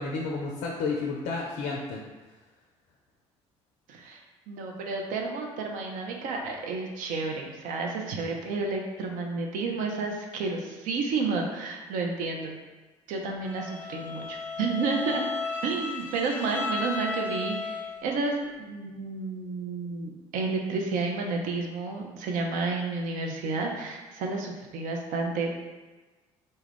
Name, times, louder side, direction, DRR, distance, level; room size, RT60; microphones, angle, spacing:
voice 1, 0.0-2.0, left 4 dB, 55° left, -1 dB, 0.4 m, -31 dB
voice 2, 3.9-4.2 4.5-12.6 13.1-15.3 15.6-25.6, right 3 dB, 55° right, 1 dB, 0.5 m, -31 dB
Bowed string instrument, 13.4-18.1, left 4 dB, 15° left, 0.6 m, -34 dB
2.2 x 2.1 x 3.3 m, 1.2 s
hypercardioid pair, 55°, 16 cm